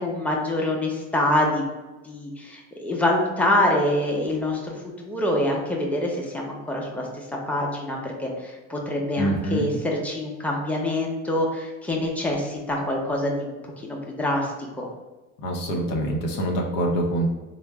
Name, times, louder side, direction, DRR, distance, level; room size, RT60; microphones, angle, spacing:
voice 1, 0.0-1.6 2.0-4.8 5.0-7.1 7.5-14.9, left 1 dB, 5° left, -1 dB, 0.6 m, -25 dB
voice 2, 9.2-9.7 15.4-17.3, right 1 dB, 85° left, 0 dB, 0.8 m, -25 dB
3.4 x 2.0 x 3.4 m, 1.2 s
supercardioid pair, 85°, 36 cm